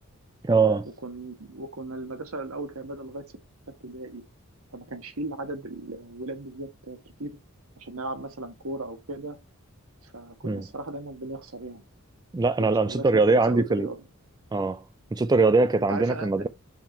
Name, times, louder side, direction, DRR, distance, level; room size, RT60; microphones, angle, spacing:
voice 1, 0.4-0.9 10.4-10.6 12.3-13.9 14.5-14.8 15.1-16.5, right 3 dB, 20° right, 0.3 m, -22 dB
voice 2, 1.0-3.3 3.7-4.3 4.7-7.4 7.8-9.4 10.0-11.9 12.6-14.0 15.9-16.3, right 2 dB, 75° right, 1.4 m, -37 dB
5.8 x 4.4 x 4.4 m
head